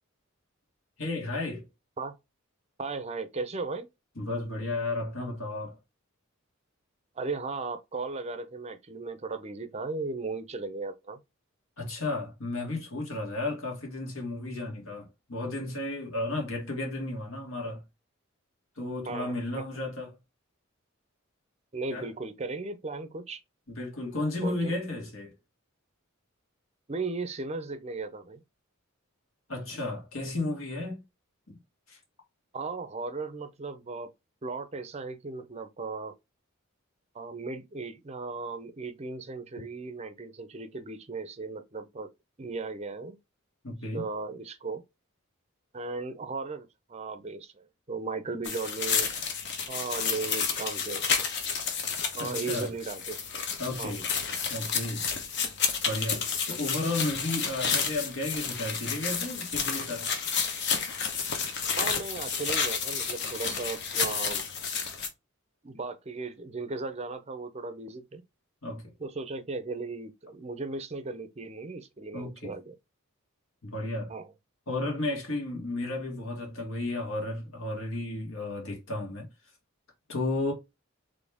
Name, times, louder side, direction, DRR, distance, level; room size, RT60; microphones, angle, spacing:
voice 1, 1.0-1.6 4.2-5.7 11.8-17.8 18.8-20.2 21.9-22.1 23.7-25.3 29.5-31.0 31.5-31.6 31.9-32.0 43.6-44.1 52.2-52.7 53.6-54.1 54.5-55.1 55.8-60.1 68.6-68.9 72.1-72.5 73.6-74.1 74.7-79.3 80.1-80.5, left 2 dB, 75° left, 1.9 m, -33 dB
voice 2, 2.8-3.9 7.2-11.2 19.1-19.6 21.7-23.4 24.4-24.8 26.9-28.4 32.5-34.1 34.4-36.1 37.1-42.1 42.4-43.2 43.9-44.8 45.7-49.1 49.7-51.3 52.1-53.2 53.8-54.0 61.7-64.4 65.6-68.2 69.0-72.8 74.1-74.3, right 3 dB, 30° right, 0.5 m, -36 dB
sound 1, 48.4-65.1, left 6 dB, 55° left, 1.0 m, -31 dB
4.2 x 3.2 x 3.4 m
head